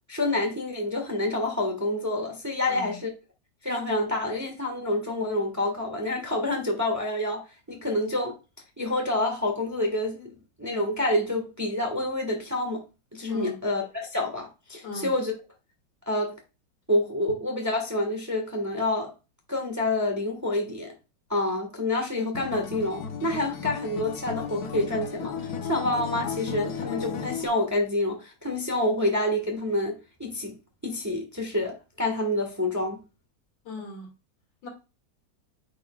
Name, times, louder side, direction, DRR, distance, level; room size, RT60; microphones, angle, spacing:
voice 1, 0.1-3.1 3.6-7.4 7.7-8.4 8.8-12.8 13.1-15.3 16.1-16.4 16.9-19.1 19.5-20.9 21.3-30.5 30.8-33.0, left 1 dB, 10° right, 1.1 m, -28 dB
voice 2, 2.7-3.0 13.3-13.6 14.8-15.1 33.6-34.1 34.6-34.7, left 2 dB, 75° left, 2.7 m, -38 dB
Acoustic guitar, 22.3-27.5, left 6 dB, 60° left, 1.2 m, -34 dB
8.8 x 4.9 x 2.3 m
omnidirectional pair, 2.0 m